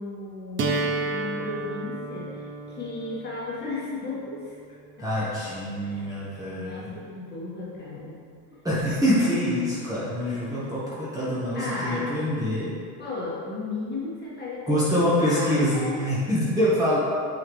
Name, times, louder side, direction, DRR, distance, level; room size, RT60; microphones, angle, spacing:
voice 1, 0.0-4.5 5.1-5.2 5.7-8.2 9.4-9.7 10.4-10.7 11.5-12.1 13.0-16.0, left 3 dB, 25° left, -6 dB, 1.7 m, -35 dB
sound 1, 0.6-6.6, right 3 dB, 30° right, 0.6 m, -33 dB
voice 2, 5.0-6.9 8.6-12.7 14.7-17.0, equal, 10° right, -10 dB, 1.4 m, -25 dB
8.5 x 4.8 x 3.2 m, 2.2 s
cardioid pair, 140°, 43 cm